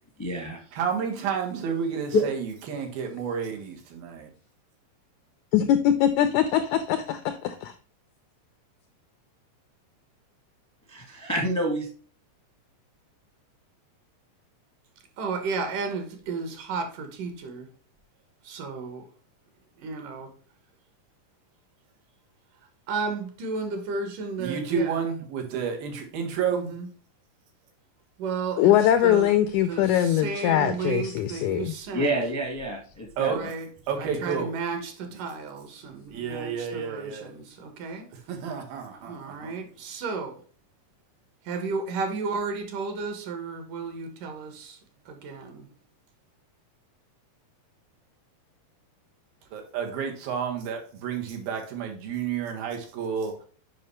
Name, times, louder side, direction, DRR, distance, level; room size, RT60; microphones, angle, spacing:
voice 1, 0.2-0.6 2.1-2.3 10.9-11.9 31.9-33.5, equal, 15° left, 0.6 m, -27 dB
voice 2, 0.7-4.3 24.4-26.7 33.2-33.4 33.9-34.5 35.1-35.2 36.1-37.3 38.3-39.6 49.5-53.4, right 6 dB, 90° right, 3.3 m, -30 dB
voice 3, 5.5-7.2 28.6-31.8, left 10 dB, 85° left, 1.7 m, -22 dB
voice 4, 15.2-17.7 18.4-19.0 19.8-20.3 22.9-25.1 26.5-26.9 28.2-28.7 29.0-29.3 29.7-32.1 33.4-33.7 34.0-38.0 39.1-40.3 41.5-44.8 45.1-45.7, right 4 dB, 70° right, 2.8 m, -33 dB
7.7 x 5.5 x 3.1 m
omnidirectional pair, 4.0 m